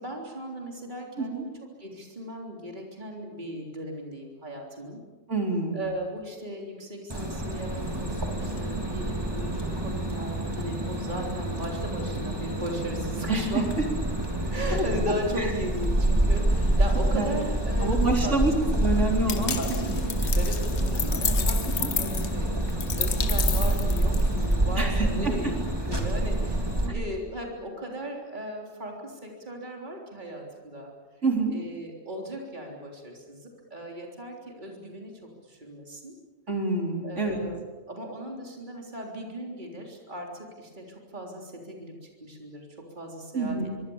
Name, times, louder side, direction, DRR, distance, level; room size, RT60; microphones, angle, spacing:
voice 1, 0.0-1.5 1.8-5.0 5.7-13.8 14.5-18.4 19.3-25.5 25.9-30.9 31.5-36.2 37.0-37.6 37.9-43.7, right 1 dB, 35° right, 0 dB, 3.8 m, -37 dB
voice 2, 5.3-5.8 13.3-13.8 14.7-14.8 15.4-15.5 17.1-17.3 17.8-19.9 21.8-21.9 24.8-25.5 26.8-26.9 31.2-31.5 36.5-37.4 43.3-43.7, right 3 dB, 65° right, 1 dB, 4.3 m, -27 dB
sound 1, 7.1-26.9, right 1 dB, 20° right, 3.4 m, -27 dB
sound 2, 19.3-24.5, left 7 dB, 60° left, 1.3 m, -32 dB
25.5 x 24.0 x 7.2 m, 1.3 s
omnidirectional pair, 1.3 m